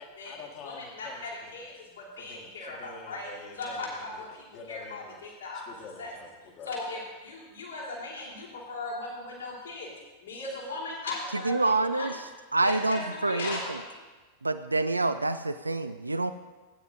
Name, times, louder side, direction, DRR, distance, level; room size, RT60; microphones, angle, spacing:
voice 1, 0.0-1.9 2.2-5.2 5.7-6.8, left 4 dB, 35° left, 0 dB, 1.4 m, -47 dB
voice 2, 0.6-3.3 3.5-5.6 6.0-6.1 6.6-9.9 10.2-12.2 12.6-14.1, left 2 dB, 70° left, -4 dB, 3.0 m, -38 dB
voice 3, 11.4-12.1 12.5-13.8 14.4-16.3, right 2 dB, 80° right, 11 dB, 0.3 m, -27 dB
18.0 x 9.4 x 2.5 m, 1.3 s
figure-of-eight pair, 90°, 0 cm